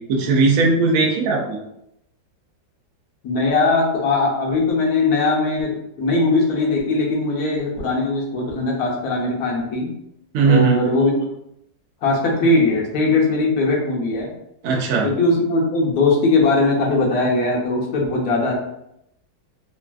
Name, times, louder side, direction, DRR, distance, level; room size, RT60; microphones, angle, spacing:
voice 1, 0.1-1.6 10.3-10.8 14.6-15.1, right 4 dB, 85° right, -1 dB, 0.7 m, -18 dB
voice 2, 3.2-9.9 10.5-11.1 12.0-14.3 15.0-18.6, left 2 dB, 65° left, -2 dB, 1.0 m, -20 dB
3.2 x 2.3 x 2.3 m, 0.80 s
omnidirectional pair, 2.0 m